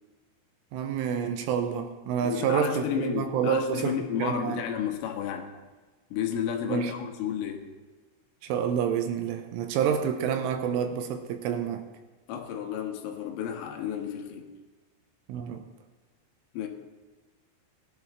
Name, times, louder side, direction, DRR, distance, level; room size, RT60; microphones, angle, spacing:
voice 1, 0.7-4.6 6.7-6.9 8.4-11.9 15.3-15.7, right 7 dB, 85° right, 7 dB, 3.1 m, -28 dB
voice 2, 2.2-5.5 6.1-7.7 12.3-14.6 16.5-16.7, left 8 dB, 80° left, 3 dB, 3.7 m, -32 dB
19.5 x 11.5 x 3.6 m, 1.3 s
omnidirectional pair, 5.9 m